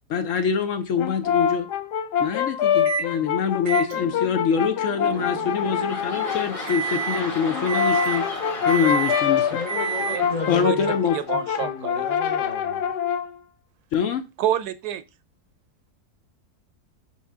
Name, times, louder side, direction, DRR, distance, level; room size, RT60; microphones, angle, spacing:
voice 1, 0.1-1.7 2.2-8.2 8.6-9.5 10.5-11.1 13.9-14.2, left 7 dB, 65° left, 0.9 m, -24 dB
Brass instrument, 1.0-6.5 7.5-13.3, left 8 dB, 90° left, 1.3 m, -25 dB
Microwave oven, 2.9-3.1 3.7-10.5, right 7 dB, 45° right, 0.6 m, -31 dB
sound 1, 5.1-11.7 12.2-12.3, left 2 dB, 25° left, 1.2 m, -35 dB
voice 2, 9.4-11.0 11.3-12.9, left 3 dB, 40° left, 0.6 m, -34 dB
voice 3, 11.1-12.1 14.4-15.0, right 11 dB, 80° right, 1.2 m, -27 dB
6.3 x 5.8 x 3.4 m
omnidirectional pair, 1.7 m